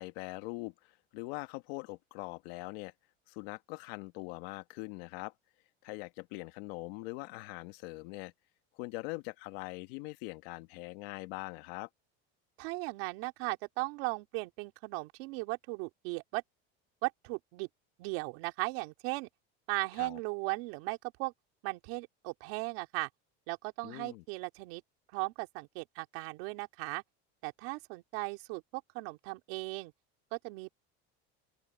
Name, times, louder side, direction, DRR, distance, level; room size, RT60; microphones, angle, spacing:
voice 1, 0.0-2.9 3.3-5.3 5.8-8.3 8.7-11.9 20.0-20.2 23.8-24.2, left 22 dB, 80° left, 1.4 m, -42 dB
voice 2, 12.6-16.4 17.0-17.7 18.0-19.3 19.7-21.3 21.6-23.1 23.5-24.8 25.1-27.0 27.4-29.9 30.3-30.7, right 26 dB, 80° right, 2.8 m, -37 dB
open air
cardioid pair, 135°, 30 cm